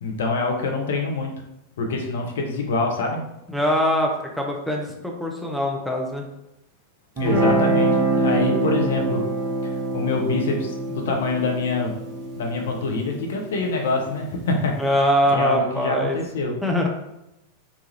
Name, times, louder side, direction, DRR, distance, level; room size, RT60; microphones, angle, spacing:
voice 1, 0.0-1.3 1.8-3.2 7.2-9.2 9.6-11.9 12.4-14.7 15.3-16.6, left 3 dB, 60° left, 2 dB, 0.5 m, -25 dB
voice 2, 3.5-6.3 14.8-16.2 16.6-16.9, equal, ahead, -1 dB, 0.5 m, -22 dB
Guitar, 7.2-14.3, right 2 dB, 30° right, 1.0 m, -25 dB
3.0 x 2.3 x 2.7 m, 0.90 s
figure-of-eight pair, 90°, 0 cm